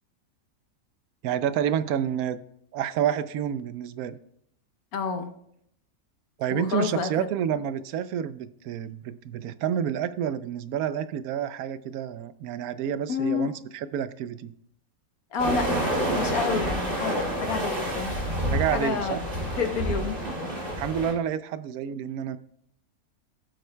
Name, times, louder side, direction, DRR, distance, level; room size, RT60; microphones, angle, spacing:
voice 1, 1.2-2.4 2.7-4.2 6.4-14.5 18.5-19.2 20.8-22.4, right 9 dB, 85° right, 13 dB, 1.1 m, -29 dB
voice 2, 4.9-5.3 6.5-7.3 13.1-13.5 15.3-15.8 16.1-18.3 18.7-19.2 19.6-20.2, left 5 dB, 80° left, 6 dB, 1.5 m, -29 dB
sound 1, 15.4-21.1, equal, 35° right, 2.5 m, -28 dB
17.0 x 7.7 x 2.2 m, 0.72 s
omnidirectional pair, 1.5 m